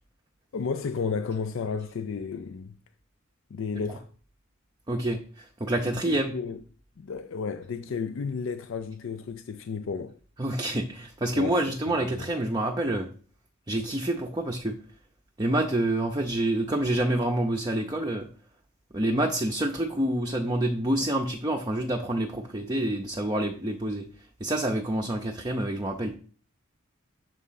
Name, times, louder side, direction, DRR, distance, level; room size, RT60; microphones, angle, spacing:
voice 1, 0.5-2.8 3.5-4.1 5.9-6.6 7.0-10.2 11.3-12.3, left 5 dB, 60° left, 0.4 m, -33 dB
voice 2, 4.9-6.3 10.4-13.1 13.7-14.8 15.4-18.3 18.9-24.0 24.4-26.2, right 1 dB, 20° right, 0.6 m, -27 dB
6.8 x 3.7 x 5.7 m
head